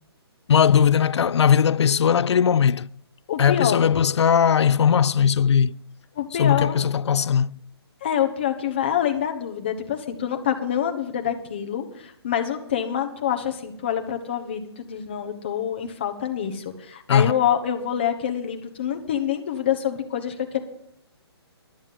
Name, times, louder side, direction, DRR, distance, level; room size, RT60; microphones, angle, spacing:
voice 1, 0.5-2.9 3.4-5.8 6.4-7.6 17.1-17.3, left 7 dB, 85° left, 0.4 m, -19 dB
voice 2, 3.3-3.8 6.2-6.8 8.0-20.6, left 9 dB, 25° left, 0.9 m, -26 dB
11.5 x 7.2 x 7.5 m
hypercardioid pair, 175°, 14 cm